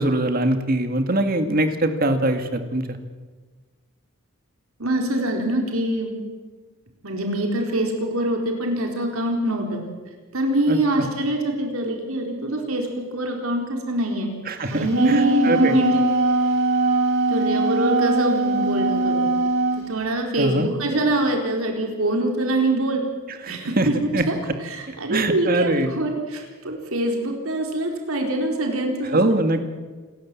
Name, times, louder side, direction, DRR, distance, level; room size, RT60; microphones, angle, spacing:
voice 1, 0.0-2.9 10.7-11.0 14.5-15.8 20.4-20.7 23.4-23.9 24.1-24.2 24.9-25.9 29.1-29.6, right 1 dB, 45° right, 7 dB, 2.2 m, -22 dB
voice 2, 4.8-6.1 7.0-9.8 10.3-14.3 14.7-16.0 17.3-19.2 19.7-23.0 23.5-24.4 24.6-29.2, right 1 dB, 85° right, 2 dB, 4.2 m, -24 dB
Wind instrument woodwind instrument, 14.7-19.9, right 2 dB, 65° right, 4.1 m, -21 dB
28.0 x 14.0 x 8.6 m, 1.4 s
head